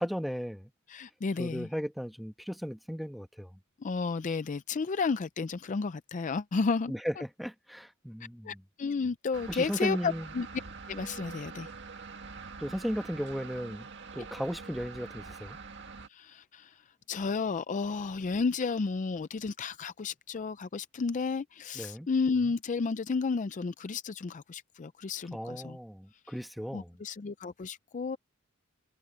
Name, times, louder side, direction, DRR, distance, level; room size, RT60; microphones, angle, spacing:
voice 1, 0.0-0.7 1.4-3.5 6.9-8.6 9.5-10.3 12.6-15.6 21.7-22.1 25.3-27.0, equal, ahead, 1.1 m, -36 dB
voice 2, 0.9-1.7 3.8-7.2 8.4-10.5 10.9-11.7 14.2-14.3 16.1-16.8 17.1-25.8 26.7-28.2, left 4 dB, 35° left, 0.4 m, -32 dB
sound 1, 9.3-16.1, right 4 dB, 55° right, 1.8 m, -45 dB
head